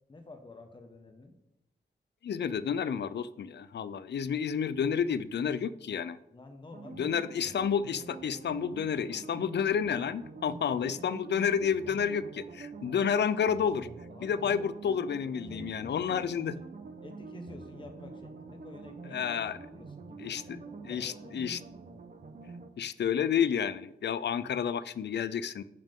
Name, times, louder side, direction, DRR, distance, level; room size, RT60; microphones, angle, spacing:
voice 1, 0.1-1.3 6.3-7.5 10.5-10.8 14.1-14.7 15.5-16.7 17.0-21.3, left 2 dB, 30° left, 4 dB, 1.0 m, -50 dB
voice 2, 2.2-6.2 7.0-13.9 14.2-16.6 19.1-19.6 20.2-20.6 20.8-21.6 22.8-25.6, left 7 dB, 85° left, 16 dB, 0.5 m, -30 dB
sound 1, 6.7-22.7, right 4 dB, 50° right, 0.8 m, -46 dB
10.5 x 7.3 x 3.7 m, 0.86 s
wide cardioid pair, 160°, 17 cm